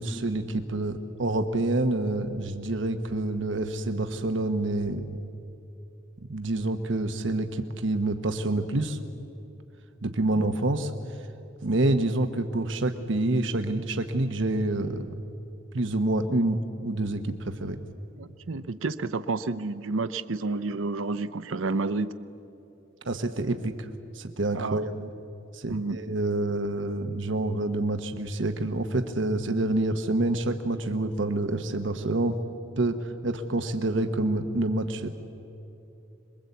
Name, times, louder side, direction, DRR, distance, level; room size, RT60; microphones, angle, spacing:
voice 1, 0.0-5.0 6.3-9.0 10.0-10.9 11.6-15.1 15.7-17.8 23.0-23.9 24.1-25.1 25.5-32.4 32.8-35.1, right 2 dB, 70° right, 7 dB, 1.1 m, -27 dB
voice 2, 18.2-22.1 24.5-24.8 25.7-26.0, right 3 dB, 85° right, 12 dB, 0.7 m, -30 dB
27.0 x 21.5 x 8.3 m, 3.0 s
head